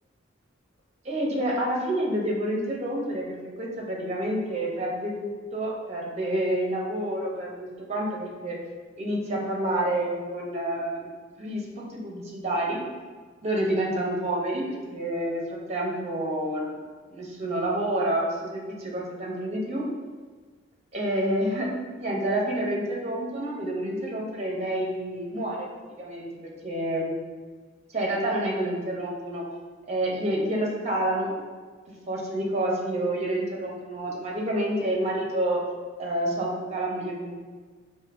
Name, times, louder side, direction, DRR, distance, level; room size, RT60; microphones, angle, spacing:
voice 1, 1.0-8.6 9.0-11.1 11.4-12.8 13.4-15.4 15.7-16.7 17.1-19.8 20.9-21.7 22.0-25.7 26.0-26.3 26.6-27.1 27.9-29.4 29.9-31.3 32.1-35.6 36.0-37.4, right 1 dB, 35° right, -2 dB, 0.8 m, -28 dB
5.0 x 2.6 x 2.5 m, 1.4 s
head